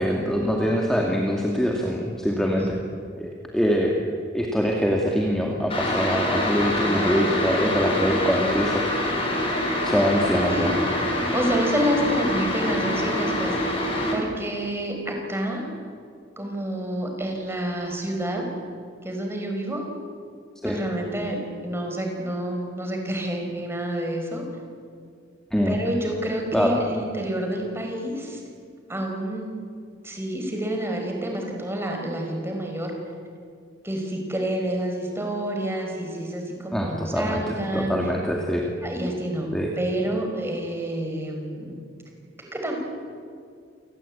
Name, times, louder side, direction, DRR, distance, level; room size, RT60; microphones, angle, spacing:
voice 1, 0.0-2.7 3.2-3.9 4.3-8.9 9.8-10.7 20.6-20.8 25.5-25.8 26.5-26.8 36.7-38.7 39.5-39.7, equal, 5° left, -1 dB, 2.3 m, -24 dB
sound 1, 5.7-14.1, left 1 dB, 30° left, 6.0 m, -25 dB
voice 2, 6.9-7.3 10.5-10.8 11.3-13.7 14.1-15.6 16.4-18.4 19.0-19.8 20.6-24.4 25.7-28.4 28.9-29.5 30.0-32.9 33.8-37.9 38.8-41.7 42.4-42.7, right 1 dB, 15° right, 2 dB, 4.9 m, -28 dB
28.5 x 19.5 x 8.7 m, 2.3 s
head